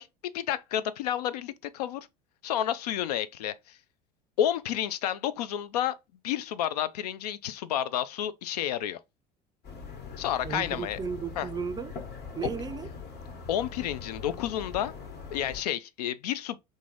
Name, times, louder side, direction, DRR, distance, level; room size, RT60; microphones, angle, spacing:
voice 1, 0.0-2.1 2.4-3.8 4.4-6.0 6.2-9.0 10.2-11.0 11.4-11.5 13.5-14.9 15.3-16.6, left 11 dB, 75° left, 0.4 m, -30 dB
sound 1, 9.6-15.6, left 5 dB, 50° left, 1.2 m, -41 dB
voice 2, 10.4-11.9 12.3-12.9, right 6 dB, 20° right, 0.4 m, -34 dB
3.6 x 2.7 x 3.0 m
hypercardioid pair, 70°, 20 cm